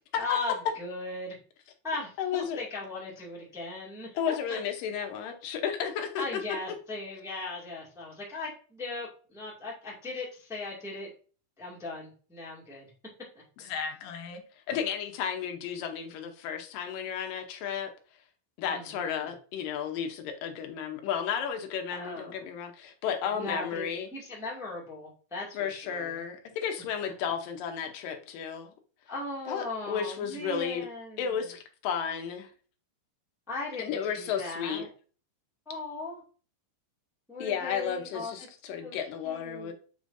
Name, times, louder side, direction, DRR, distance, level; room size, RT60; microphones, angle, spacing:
voice 1, 0.2-1.3 1.8-4.6 6.2-11.1 11.6-12.9 18.6-19.3 21.9-22.4 23.3-23.8 24.1-26.2 27.0-27.1 29.1-31.4 33.5-34.9 35.6-36.2 37.3-38.3 38.8-39.0 39.2-39.7, left 2 dB, ahead, 1.2 m, -38 dB
voice 2, 2.2-2.7 4.2-6.2 13.6-14.4 14.7-17.9 18.6-24.1 25.5-28.7 29.5-30.9 31.2-32.5 33.8-34.8 37.4-39.7, left 7 dB, 85° left, 2.6 m, -33 dB
7.2 x 5.0 x 2.6 m
omnidirectional pair, 3.9 m